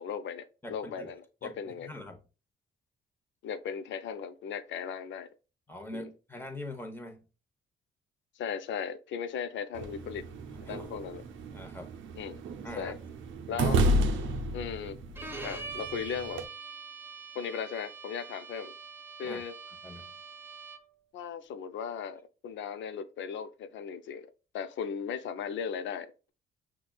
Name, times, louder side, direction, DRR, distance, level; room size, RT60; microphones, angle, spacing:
voice 1, 0.0-1.9 3.4-5.3 5.9-6.1 8.4-10.3 10.6-11.2 12.2-12.4 12.8-13.0 13.5-13.8 14.5-15.0 15.4-16.4 17.3-18.7 19.2-19.5 21.1-24.3 24.5-26.3, left 7 dB, 70° left, 0.5 m, -37 dB
voice 2, 0.6-1.1 1.4-2.2 5.7-7.2 10.5-10.9 11.5-12.0 12.6-12.9 15.0-15.2 19.2-19.4 19.8-20.1, left 1 dB, 10° left, 0.9 m, -43 dB
sound 1, 9.8-16.5, right 1 dB, 75° right, 0.6 m, -32 dB
Bowed string instrument, 15.2-21.0, right 4 dB, 10° right, 0.5 m, -44 dB
5.8 x 2.3 x 2.3 m
cardioid pair, 90°, 20 cm